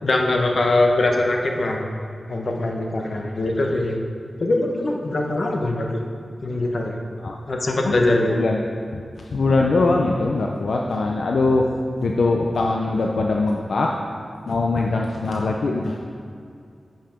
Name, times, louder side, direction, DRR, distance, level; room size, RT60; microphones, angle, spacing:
voice 1, 0.0-1.9 2.3-4.0 4.4-6.0 6.4-7.0 7.5-8.3, left 2 dB, 55° left, 1 dB, 1.0 m, -22 dB
voice 2, 8.3-8.6 8.9-9.0 9.3-11.7 12.0-13.9 14.5-16.0, left 3 dB, 75° left, 0 dB, 0.5 m, -21 dB
8.5 x 5.6 x 5.1 m, 2.4 s
wide cardioid pair, 100°, 0 cm